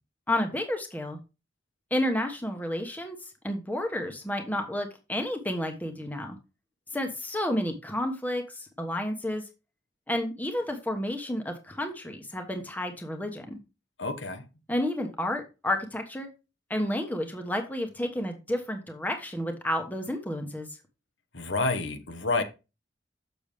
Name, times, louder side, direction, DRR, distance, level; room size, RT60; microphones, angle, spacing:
voice 1, 0.3-1.2 1.9-3.2 3.4-6.4 6.9-9.4 10.1-13.6 14.7-16.3 16.7-20.7, left 1 dB, 10° left, 1.1 m, -31 dB
voice 2, 14.0-14.4 21.3-22.4, left 3 dB, 90° left, 1.3 m, -29 dB
7.0 x 6.8 x 3.4 m
head